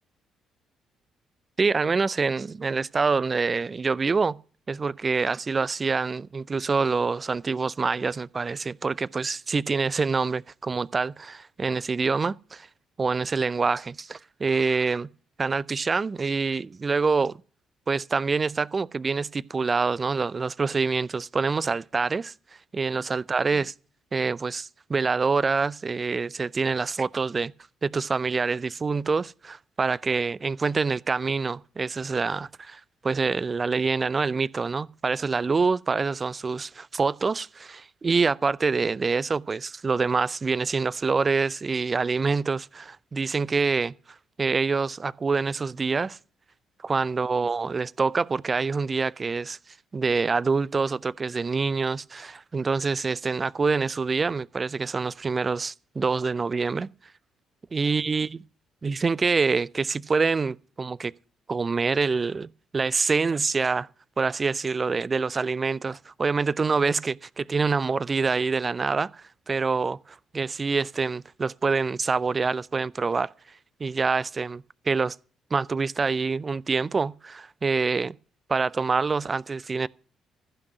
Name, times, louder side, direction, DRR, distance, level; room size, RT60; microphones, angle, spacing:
voice 1, 1.6-4.4 4.7-12.7 13.0-15.1 15.4-17.4 17.9-22.3 22.7-23.7 24.1-27.5 27.8-43.9 44.4-46.2 46.8-49.6 49.9-56.9 57.7-58.4 58.8-61.1 61.5-63.9 64.2-73.3 73.8-75.2 75.5-78.2 78.5-79.9, right 4 dB, 35° right, 0.5 m, -26 dB
15.0 x 6.1 x 7.9 m
hypercardioid pair, 45°, 0 cm